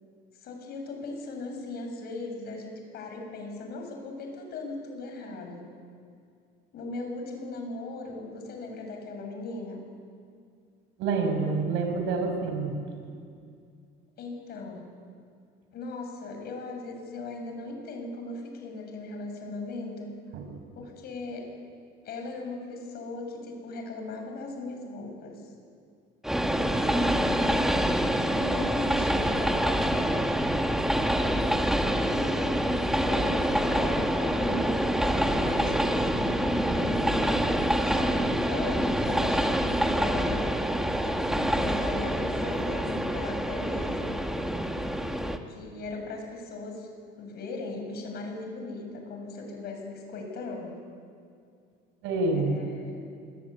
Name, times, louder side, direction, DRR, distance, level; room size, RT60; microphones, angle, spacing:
voice 1, 0.4-5.7 6.7-9.8 14.2-14.9 15.7-20.1 20.7-21.5 22.0-25.5 26.9-27.8 28.2-30.3 32.0-32.6 32.8-40.5 40.9-44.2 45.5-46.9 47.2-50.8 52.4-53.1, left 3 dB, 55° left, 3 dB, 7.6 m, -38 dB
voice 2, 11.0-12.8 20.3-20.5 52.0-52.6, right 3 dB, 80° right, 5 dB, 5.8 m, -27 dB
Train, 26.2-45.4, equal, ahead, 1.6 m, -26 dB
28.5 x 21.5 x 9.8 m, 2.3 s
cardioid pair, 130°, 19 cm